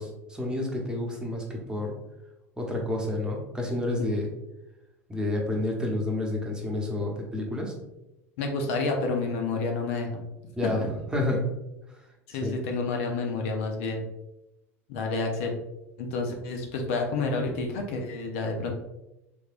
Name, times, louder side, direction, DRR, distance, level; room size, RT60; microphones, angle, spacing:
voice 1, 0.0-2.0 2.6-4.3 5.1-7.7 10.6-10.8 11.1-11.5 12.4-12.6, left 1 dB, 10° right, 0 dB, 0.9 m, -29 dB
voice 2, 8.4-10.2 10.6-10.7 12.3-14.0 14.9-15.5 16.0-18.7, left 3 dB, 65° left, 2 dB, 0.6 m, -29 dB
3.5 x 3.2 x 2.5 m, 0.93 s
hypercardioid pair, 75°, 8 cm